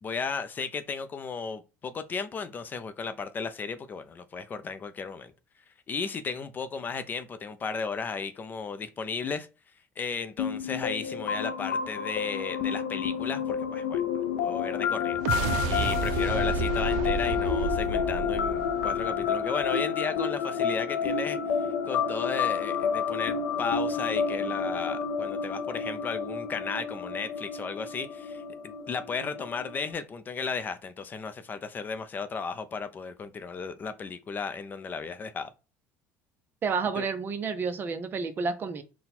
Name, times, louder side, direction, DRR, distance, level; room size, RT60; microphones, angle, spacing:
voice 1, 0.0-5.3 5.9-9.5 10.0-14.0 14.4-21.4 21.8-35.5 37.0-37.1, left 5 dB, 30° left, 0.5 m, -35 dB
sound 1, 10.4-29.9, left 7 dB, 85° left, 0.5 m, -30 dB
sound 2, 15.1-19.6, right 6 dB, 80° right, 0.4 m, -31 dB
voice 2, 36.6-38.8, right 5 dB, 35° right, 0.6 m, -30 dB
4.1 x 2.2 x 4.1 m
cardioid pair, 115°, 6 cm